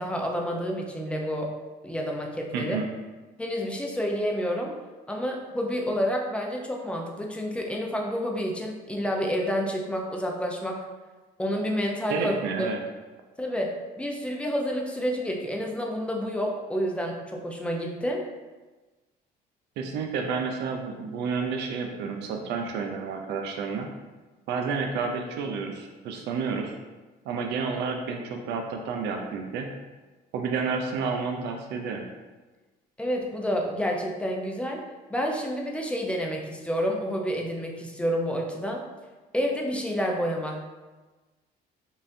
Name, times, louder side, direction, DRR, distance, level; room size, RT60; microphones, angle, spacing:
voice 1, 0.0-1.5 1.8-2.8 3.4-4.7 5.1-10.8 11.4-12.7 13.4-18.2 33.0-34.8 35.1-38.8 39.3-40.6, equal, 5° left, 0 dB, 0.6 m, -29 dB
voice 2, 2.5-2.9 12.1-12.8 19.8-23.9 24.5-26.7 27.3-29.7 30.3-32.0, right 5 dB, 85° right, 3 dB, 0.5 m, -30 dB
5.5 x 2.5 x 2.6 m, 1.2 s
cardioid pair, 110°, 17 cm